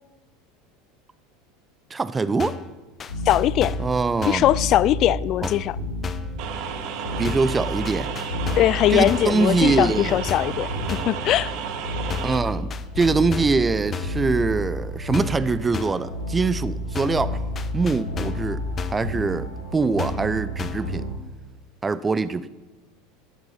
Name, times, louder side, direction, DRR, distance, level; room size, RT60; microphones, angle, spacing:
voice 1, 1.9-2.6 3.8-4.5 7.2-8.1 8.9-10.2 12.2-12.7 12.9-17.4 17.7-18.6 18.9-21.1 21.8-22.5, right 4 dB, 20° right, 0.6 m, -23 dB
sound 1, 2.4-2.7 3.0-3.9 4.2-4.5 5.4-5.7 6.0-6.4 7.2-7.6 7.8-8.8 9.1-9.4 10.3-10.6 10.9-11.2 12.1-12.4 12.7-13.6 13.9-14.2 15.1-15.5 15.7-16.1 16.9-17.3 17.6-18.5 18.8-19.1 20.0-20.3 20.6-20.9, left 6 dB, 30° left, 0.8 m, -34 dB
sound 2, 3.1-21.1, left 1 dB, 80° left, 5.2 m, -31 dB
voice 2, 3.3-3.8 4.2-5.8 8.6-10.7 11.1-11.5, left 13 dB, 45° left, 0.3 m, -20 dB
sound 3, 6.4-12.4, right 7 dB, 55° right, 1.3 m, -32 dB
12.0 x 10.5 x 5.7 m
hypercardioid pair, 80°, 0 cm